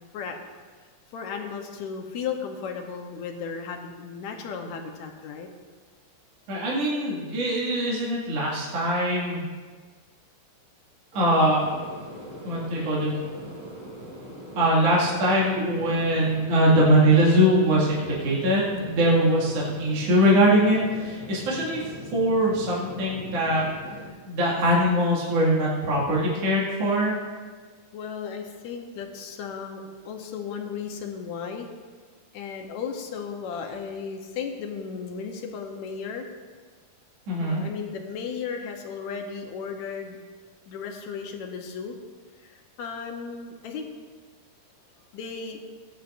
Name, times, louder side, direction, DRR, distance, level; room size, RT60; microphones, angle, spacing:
voice 1, 0.1-0.5 1.1-5.5 27.9-31.7 32.3-36.3 37.4-40.2 40.7-42.0 42.4-43.9 45.1-45.6, left 6 dB, 70° left, 3 dB, 2.1 m, -35 dB
voice 2, 6.5-9.4 11.1-11.7 12.4-13.2 14.5-21.8 22.1-23.6 24.3-27.2 37.3-37.6, equal, 50° right, -6 dB, 3.1 m, -22 dB
sound 1, 11.1-24.1, right 1 dB, 25° right, 3.3 m, -41 dB
18.5 x 9.6 x 2.6 m, 1.5 s
omnidirectional pair, 3.8 m